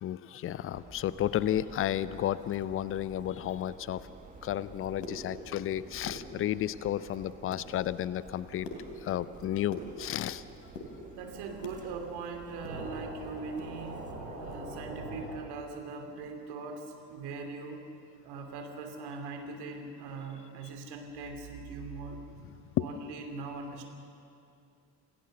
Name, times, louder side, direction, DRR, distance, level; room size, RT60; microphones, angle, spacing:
voice 1, 0.0-4.1 4.4-8.7 9.0-10.4 22.8-22.9, left 12 dB, 25° left, 18 dB, 0.6 m, -32 dB
Subway metro underground, 0.7-15.0, right 3 dB, 15° right, 1.6 m, -52 dB
sound 1, 1.0-15.2, right 2 dB, 75° right, 6.1 m, -48 dB
sound 2, 4.8-5.7 6.0-6.8 7.2-7.7 8.1-10.4 10.6-11.8 12.2-13.7 14.0-14.1 14.5-14.7 15.1-15.3, left 2 dB, 70° left, 3.1 m, -45 dB
voice 2, 11.1-14.1 14.3-17.8 18.2-22.2 22.8-23.9, right 4 dB, 50° right, 4 dB, 2.8 m, -41 dB
28.0 x 16.0 x 6.6 m, 2.6 s
figure-of-eight pair, 60°, 50 cm